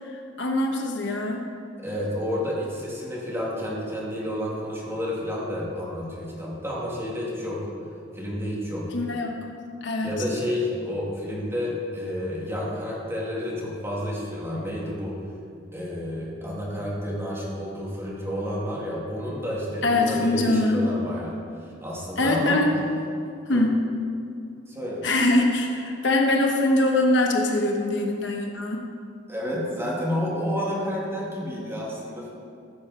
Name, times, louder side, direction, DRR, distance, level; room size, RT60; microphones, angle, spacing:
voice 1, 0.0-1.5 8.9-9.4 9.8-10.1 19.8-20.9 22.2-22.8 23.5-23.8 25.0-28.9, left 2 dB, 70° left, 2 dB, 1.2 m, -23 dB
voice 2, 1.8-7.6 8.1-8.9 10.0-15.2 15.7-21.4 21.8-22.6 23.5-23.6 24.7-25.0 29.3-32.3, equal, 15° right, -6 dB, 2.7 m, -30 dB
14.5 x 7.2 x 5.1 m, 2.5 s
head